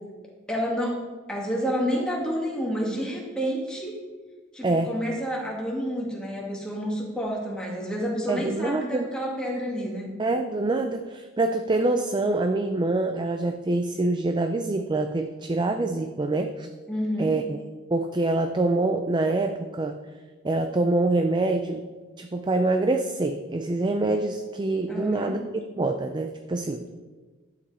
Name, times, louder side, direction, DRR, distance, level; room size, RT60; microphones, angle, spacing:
voice 1, 0.5-1.0 1.3-4.0 4.5-10.1 16.9-17.3 24.9-25.4, equal, 5° left, -3 dB, 2.0 m, -29 dB
voice 2, 4.6-4.9 8.3-9.1 10.2-16.7 17.2-17.6 17.9-20.0 20.4-21.8 22.2-25.4 25.8-26.9, right 2 dB, 20° right, 6 dB, 0.4 m, -25 dB
11.5 x 7.7 x 4.2 m, 1.4 s
head